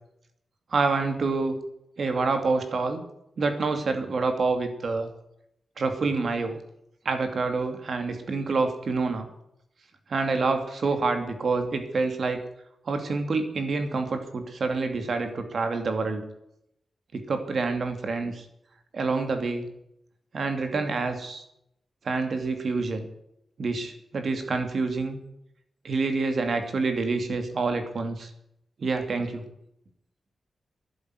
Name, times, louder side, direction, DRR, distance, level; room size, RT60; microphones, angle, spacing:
voice 1, 0.7-1.6 2.0-3.0 3.4-5.1 5.8-6.6 7.0-9.3 10.1-12.4 12.9-16.2 17.1-18.4 18.9-19.7 20.3-21.4 22.0-23.1 23.6-25.2 25.8-28.3 28.8-29.5, right 3 dB, 50° right, 7 dB, 2.6 m, -27 dB
13.0 x 11.0 x 9.4 m, 0.78 s
wide cardioid pair, 160°, 0 cm